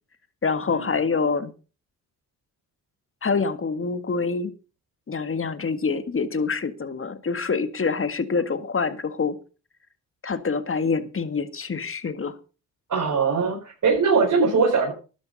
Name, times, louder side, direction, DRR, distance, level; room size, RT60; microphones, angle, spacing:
voice 1, 0.4-1.5 3.2-4.5 5.1-9.4 10.2-12.4, left 4 dB, 40° left, 1.8 m, -26 dB
voice 2, 12.9-14.9, right 4 dB, 60° right, 4.8 m, -21 dB
12.5 x 10.5 x 5.3 m
supercardioid pair, 60°, 34 cm